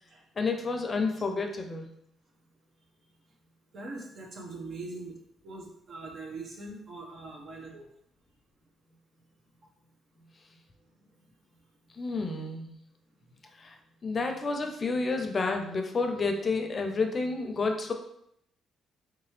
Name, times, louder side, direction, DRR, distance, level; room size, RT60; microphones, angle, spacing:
voice 1, 0.4-1.9 12.0-12.7 13.6-13.7 14.0-17.9, left 3 dB, 40° left, 4 dB, 0.5 m, -30 dB
voice 2, 3.7-5.2 5.4-7.9, right 3 dB, 60° right, 0 dB, 1.0 m, -42 dB
3.6 x 2.9 x 3.2 m, 0.75 s
cardioid pair, 90°, 0 cm